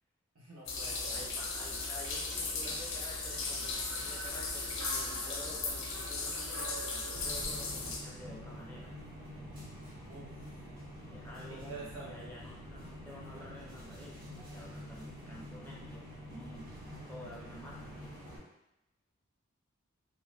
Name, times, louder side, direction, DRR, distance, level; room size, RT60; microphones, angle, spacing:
voice 1, 0.3-1.2 10.0-10.3 11.5-12.3, right 3 dB, 85° right, -6 dB, 0.9 m, -47 dB
sound 1, 0.6-8.0, left 3 dB, 65° left, 0.6 m, -37 dB
voice 2, 1.1-9.0 11.1-16.7 17.1-18.2, left 1 dB, 10° left, -5 dB, 0.4 m, -50 dB
sound 2, 1.7-8.9, right 4 dB, 65° right, 0.4 m, -50 dB
sound 3, 7.1-18.4, equal, 40° right, 0.8 m, -47 dB
2.7 x 2.0 x 3.2 m, 0.90 s
head